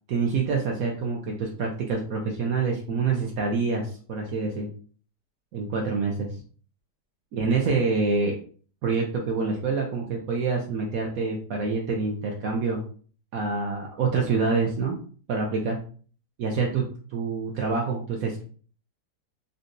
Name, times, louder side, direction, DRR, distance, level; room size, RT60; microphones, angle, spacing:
voice 1, 0.1-4.7 5.5-6.3 7.3-8.4 8.8-12.8 13.3-15.0 15.3-15.8 16.4-18.4, right 4 dB, 70° right, 0 dB, 0.9 m, -26 dB
3.9 x 2.3 x 2.5 m, 0.43 s
omnidirectional pair, 1.8 m